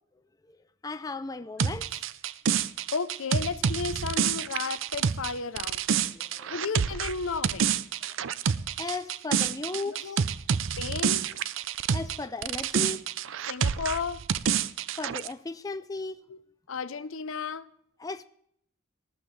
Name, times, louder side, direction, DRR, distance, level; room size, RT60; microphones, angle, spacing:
voice 1, 0.8-2.0 6.1-6.6 8.8-10.2 11.9-13.0 15.0-16.2 18.0-18.2, left 3 dB, 15° left, 0.4 m, -36 dB
sound 1, 1.6-12.2 12.4-15.3, right 7 dB, 65° right, 0.5 m, -28 dB
voice 2, 2.9-6.0 6.5-7.7 9.9-10.2 10.8-11.2 13.5-14.2 16.3-16.4 16.7-17.7, left 5 dB, 75° left, 0.6 m, -33 dB
18.5 x 14.0 x 3.2 m
head